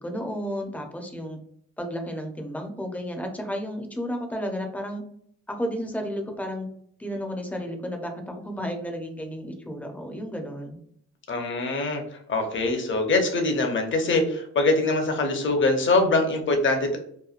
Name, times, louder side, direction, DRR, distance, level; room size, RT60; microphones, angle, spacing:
voice 1, 0.0-1.4 1.8-5.0 5.5-6.7 7.0-10.8, equal, 5° left, 3 dB, 0.5 m, -32 dB
voice 2, 11.3-12.0 12.3-17.0, left 2 dB, 40° left, 3 dB, 0.7 m, -23 dB
3.0 x 2.2 x 2.4 m, 0.66 s
cardioid pair, 90°, 30 cm